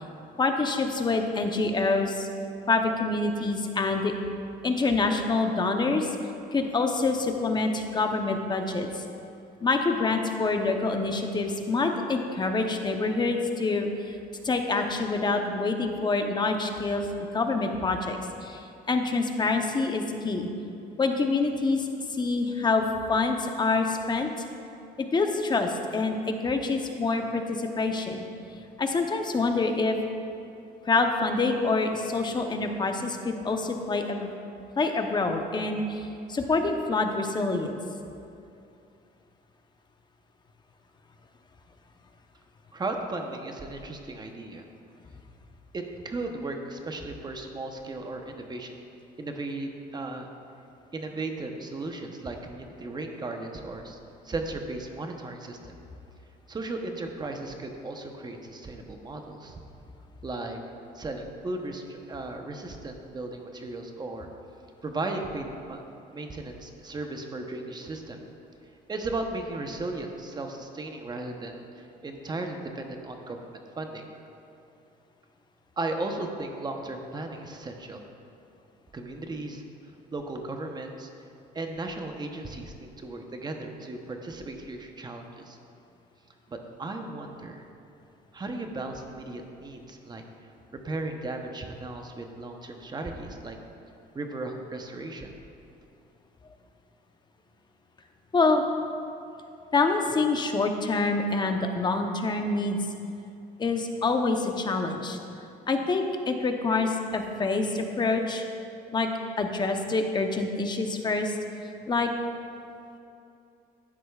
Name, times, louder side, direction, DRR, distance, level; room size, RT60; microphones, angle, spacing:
voice 1, 0.4-2.3 2.7-4.1 4.6-6.1 6.5-9.0 9.6-14.1 14.4-18.6 18.9-20.5 21.0-21.9 22.1-24.3 25.0-28.2 28.8-30.0 30.9-34.3 34.8-37.8 98.3-98.6 99.7-102.8 103.6-105.2 105.7-108.4 108.9-109.1 109.4-111.4 111.9-112.1, left 3 dB, 25° left, 4 dB, 0.8 m, -26 dB
voice 2, 42.7-44.6 45.7-48.7 49.2-50.3 50.9-54.0 54.2-55.6 56.5-59.6 60.2-60.6 60.9-64.3 64.8-65.8 66.1-68.2 68.9-74.1 75.8-78.0 78.9-79.6 80.1-81.1 81.5-85.6 86.5-87.6 88.3-90.2 90.8-93.6 94.1-95.3, right 2 dB, 25° right, 4 dB, 0.9 m, -36 dB
12.5 x 9.9 x 2.4 m, 2.7 s
cardioid pair, 110°, 17 cm